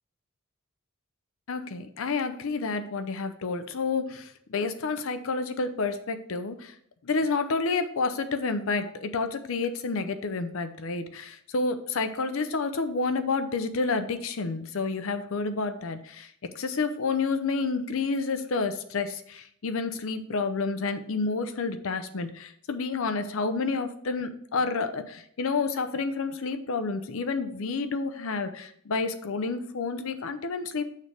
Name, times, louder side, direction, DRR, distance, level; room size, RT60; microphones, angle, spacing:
voice 1, 1.5-6.7 7.0-30.8, left 4 dB, 65° left, 9 dB, 0.6 m, -29 dB
6.5 x 3.3 x 5.0 m, 0.66 s
head